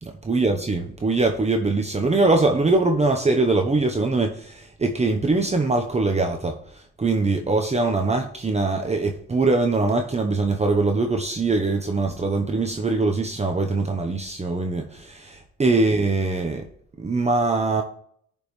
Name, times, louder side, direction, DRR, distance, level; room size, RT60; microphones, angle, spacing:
voice 1, 0.0-16.7 17.0-17.8, right 3 dB, 20° right, 1.0 m, -22 dB
10.5 x 5.4 x 3.2 m
cardioid pair, 90°, 30 cm